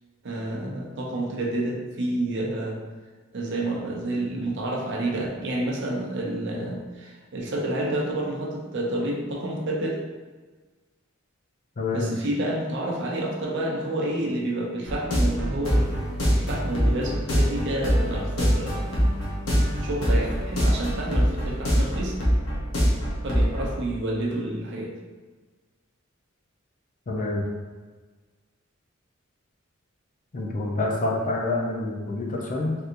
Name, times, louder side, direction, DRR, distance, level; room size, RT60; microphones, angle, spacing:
voice 1, 0.2-2.8 3.3-10.0 11.9-15.9 16.3-19.0 19.8-22.2 23.2-24.9, right 1 dB, 60° right, -1 dB, 0.6 m, -29 dB
voice 2, 11.8-12.1 27.1-27.4 30.3-32.8, left 2 dB, 40° left, -1 dB, 0.5 m, -27 dB
sound 1, 14.8-23.7, equal, 75° left, 0.9 m, -24 dB
3.3 x 2.8 x 2.5 m, 1.4 s
head